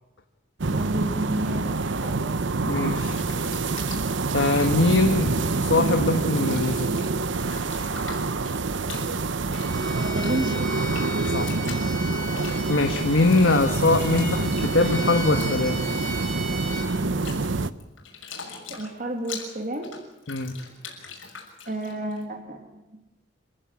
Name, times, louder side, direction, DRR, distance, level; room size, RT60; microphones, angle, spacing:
sound 1, 0.6-17.7, right 3 dB, 70° right, 0.8 m, -26 dB
voice 1, 0.7-1.6 2.0-2.2 9.9-10.6 18.7-19.9 21.7-22.6, right 1 dB, 45° right, 4 dB, 2.7 m, -30 dB
voice 2, 2.7-3.2 4.3-6.9 11.3-11.6 12.7-15.8 20.3-20.5, left 2 dB, 70° left, 5 dB, 1.6 m, -22 dB
Bathtub (filling or washing), 2.9-6.0 6.2-22.2, left 5 dB, 90° left, 6.1 m, -43 dB
Bowed string instrument, 9.5-16.9, right 1 dB, 5° left, 6.0 m, -37 dB
26.5 x 16.0 x 8.5 m, 0.96 s
head